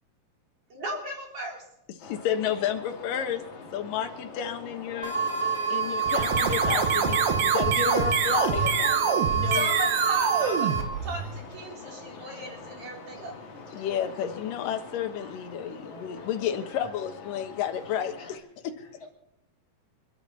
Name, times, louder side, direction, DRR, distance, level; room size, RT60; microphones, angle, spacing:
voice 1, 0.7-1.7 5.6-6.1 9.5-10.7 11.0-13.3, right 1 dB, 40° right, 0 dB, 4.8 m, -37 dB
voice 2, 2.0-3.4 3.7-5.1 5.7-9.7 13.7-18.8, left 9 dB, 75° left, 5 dB, 2.9 m, -31 dB
sound 1, 2.0-18.4, left 4 dB, 60° left, 3.7 m, -44 dB
sound 2, 5.0-10.8, right 5 dB, 10° right, 1.8 m, -27 dB
sound 3, 6.0-11.5, right 7 dB, 90° right, 3.2 m, -26 dB
voice 3, 17.9-18.6 18.9-19.1, left 2 dB, 35° left, -3 dB, 7.2 m, -53 dB
29.5 x 11.0 x 4.2 m, 0.82 s
omnidirectional pair, 4.0 m